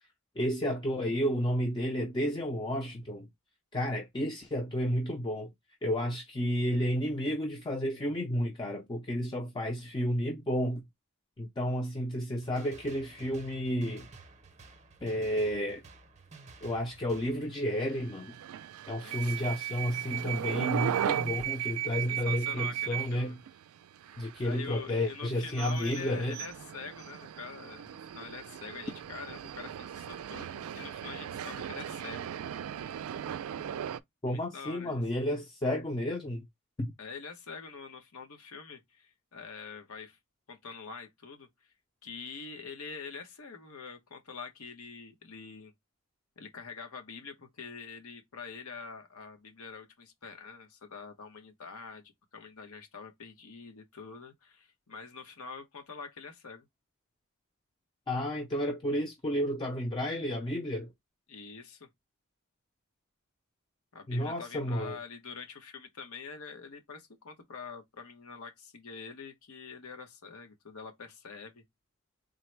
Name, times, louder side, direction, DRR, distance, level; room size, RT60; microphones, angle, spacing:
voice 1, 0.4-3.3 3.7-5.5 5.8-10.8 11.4-14.1 15.0-15.8 16.6-18.4 18.9-23.4 24.2-26.4 34.2-36.5 36.8-36.9 58.1-60.9 64.1-65.0, equal, 20° left, 0.5 m, -31 dB
sound 1, 12.4-17.4, right 3 dB, 30° right, 0.7 m, -52 dB
sound 2, 17.7-34.0, right 10 dB, 70° right, 0.3 m, -37 dB
voice 2, 19.0-19.6 22.1-23.3 24.4-32.3 34.3-35.0 37.0-40.2 40.5-41.7 42.0-45.7 46.4-56.7 61.3-61.9 63.9-71.6, left 5 dB, 80° left, 0.9 m, -45 dB
3.8 x 2.1 x 4.4 m
head